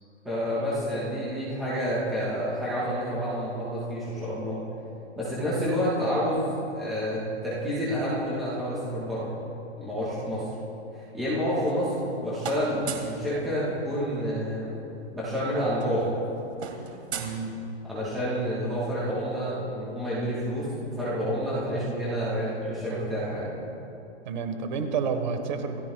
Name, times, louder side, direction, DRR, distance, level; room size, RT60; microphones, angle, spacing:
voice 1, 0.2-4.6 5.1-9.3 9.7-10.4 10.9-11.9 12.2-14.8 15.1-16.1 17.9-23.6, equal, ahead, -19 dB, 0.3 m, -29 dB
sound 1, 11.4-12.1 12.4-13.2 14.6-14.7 14.9-15.1 15.4-18.1, right 6 dB, 70° right, 2.2 m, -38 dB
voice 2, 17.2-17.6 24.2-25.8, right 5 dB, 40° right, 7 dB, 1.3 m, -30 dB
27.0 x 14.0 x 2.3 m, 2.8 s
hypercardioid pair, 170°, 34 cm